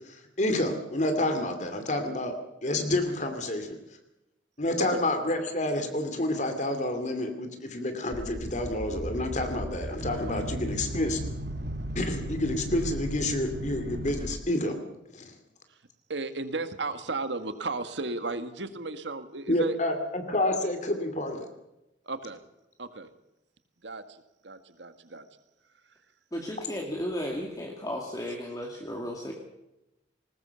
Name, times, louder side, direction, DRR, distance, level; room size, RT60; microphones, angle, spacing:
voice 1, 0.1-2.4 2.6-3.8 4.6-11.2 11.9-14.8 15.1-15.3 19.5-21.5, left 1 dB, 40° left, 7 dB, 2.5 m, -29 dB
sound 1, 8.1-14.4, right 1 dB, 55° right, 1.6 m, -35 dB
voice 2, 16.1-19.8 22.1-22.4 22.8-23.1 23.8-25.2, right 3 dB, 75° right, 10 dB, 1.8 m, -34 dB
voice 3, 26.3-29.3, equal, 20° left, 0 dB, 2.4 m, -34 dB
20.0 x 20.0 x 7.0 m, 0.91 s
head